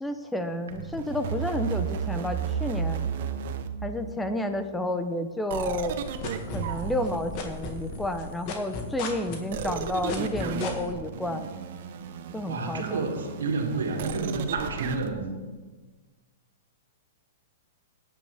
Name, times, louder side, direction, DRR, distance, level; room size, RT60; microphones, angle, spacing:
voice 1, 0.0-3.1 3.8-6.0 6.5-11.5 12.3-13.0, left 1 dB, 5° left, 8 dB, 0.7 m, -31 dB
sound 1, 0.7-4.4 5.5-8.6 9.5-15.1, right 7 dB, 60° right, 1.0 m, -34 dB
sound 2, 5.7-7.1 7.3-10.9, left 5 dB, 45° left, 2.1 m, -35 dB
voice 2, 12.4-15.3, right 3 dB, 90° right, 3 dB, 2.3 m, -30 dB
17.5 x 9.8 x 3.5 m, 1.3 s
hypercardioid pair, 135°, 0 cm